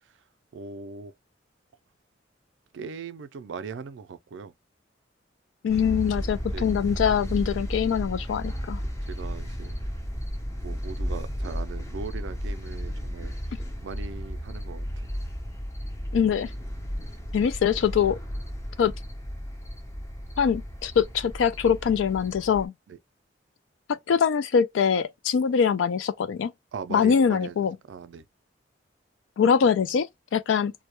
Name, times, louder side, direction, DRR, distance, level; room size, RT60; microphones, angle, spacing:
voice 1, 0.5-1.1 2.7-4.5 6.5-6.6 8.8-9.8 10.6-13.3 13.8-15.1 22.9-23.0 26.7-27.6 27.9-28.2, right 5 dB, 70° right, 0.4 m, -39 dB
voice 2, 5.6-8.8 16.1-16.5 17.3-18.2 18.8-18.9 20.4-22.7 24.1-26.5 26.9-27.8 29.4-30.7, left 7 dB, 80° left, 0.3 m, -23 dB
sound 1, 5.7-22.7, equal, 15° left, 0.5 m, -34 dB
2.2 x 2.0 x 2.9 m
head